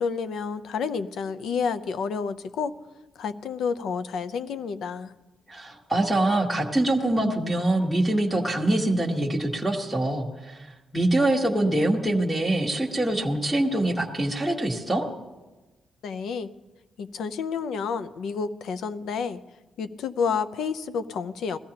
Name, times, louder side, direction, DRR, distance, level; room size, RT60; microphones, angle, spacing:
voice 1, 0.0-2.7 3.2-5.1 16.0-16.5 17.0-19.4 19.8-21.6, left 5 dB, 80° left, 13 dB, 0.6 m, -30 dB
voice 2, 5.5-10.6 10.9-15.1, right 1 dB, ahead, 0 dB, 1.2 m, -24 dB
20.5 x 15.0 x 2.9 m, 1.2 s
wide cardioid pair, 175°, 0 cm